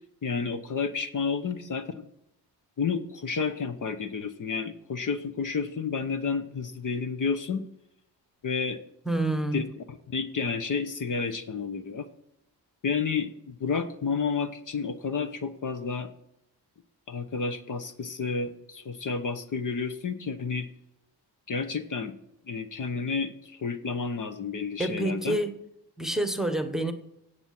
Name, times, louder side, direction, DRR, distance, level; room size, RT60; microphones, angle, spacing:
voice 1, 0.2-2.1 2.8-7.6 8.4-8.8 9.5-12.1 12.8-16.1 17.1-20.7 21.5-22.1 22.5-25.4, left 5 dB, 45° left, 1.1 m, -31 dB
voice 2, 9.1-9.6 24.8-25.6 26.0-26.9, right 1 dB, ahead, 1.2 m, -27 dB
16.0 x 8.4 x 6.0 m
cardioid pair, 120°, 41 cm